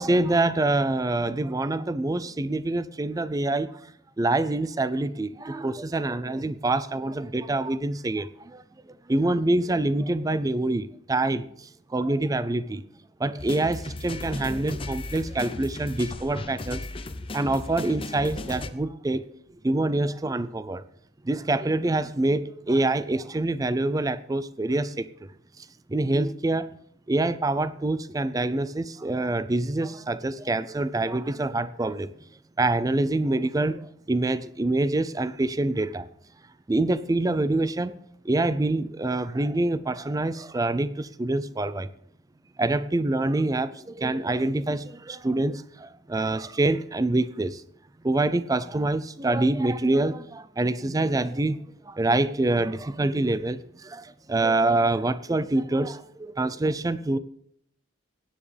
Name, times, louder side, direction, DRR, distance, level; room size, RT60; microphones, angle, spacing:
voice 1, 0.0-3.7 4.2-8.6 9.1-12.8 13.2-16.8 17.3-19.2 19.6-20.8 21.2-25.1 25.9-26.7 27.1-32.1 32.6-36.1 36.7-37.9 38.2-41.9 42.6-47.6 48.0-51.6 51.9-57.2, right 2 dB, 20° right, 15 dB, 0.4 m, -26 dB
sound 1, 13.4-18.7, left 2 dB, 30° left, 0.6 m, -36 dB
16.5 x 10.0 x 3.4 m, 0.72 s
head